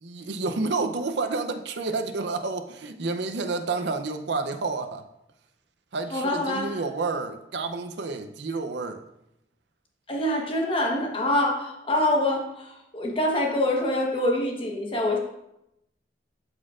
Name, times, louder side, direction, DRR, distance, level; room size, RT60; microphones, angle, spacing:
voice 1, 0.0-5.0 5.9-9.0, right 3 dB, 70° right, 8 dB, 0.6 m, -30 dB
voice 2, 6.1-6.8 10.1-15.2, left 1 dB, 30° left, 0 dB, 1.1 m, -25 dB
12.5 x 4.3 x 2.4 m, 0.84 s
head